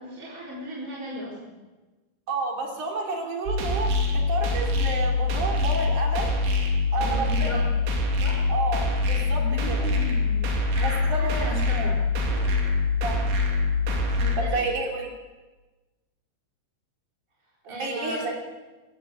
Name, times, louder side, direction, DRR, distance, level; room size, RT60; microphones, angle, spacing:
voice 1, 0.0-1.5 6.9-7.7 8.1-8.5 9.4-12.0 12.3-12.5 14.2-14.7 17.7-18.2, right 1 dB, 20° right, -5 dB, 4.1 m, -36 dB
voice 2, 2.3-6.3 6.9-7.6 8.5-9.9 10.8-11.4 11.7-11.9 13.0-13.2 14.4-15.1 17.7-18.3, right 3 dB, 45° right, 1 dB, 4.5 m, -30 dB
sound 1, 3.5-14.4, left 3 dB, 85° right, 5.0 m, -24 dB
22.5 x 15.0 x 8.2 m, 1.2 s
omnidirectional pair, 5.1 m